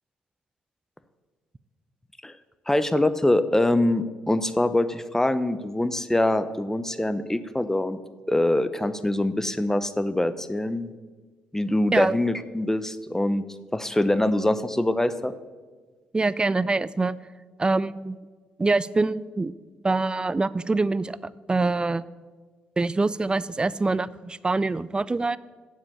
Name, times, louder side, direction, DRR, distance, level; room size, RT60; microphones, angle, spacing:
voice 1, 2.7-8.0 8.3-10.9 11.5-13.5 13.7-15.3, left 1 dB, 10° left, 13 dB, 0.7 m, -24 dB
voice 2, 16.1-17.2 17.6-18.2 18.6-19.5 19.8-21.2 21.5-22.1 22.8-25.4, right 3 dB, 20° right, 19 dB, 0.4 m, -24 dB
7.5 x 7.3 x 7.2 m, 1.4 s
hypercardioid pair, 50°, 4 cm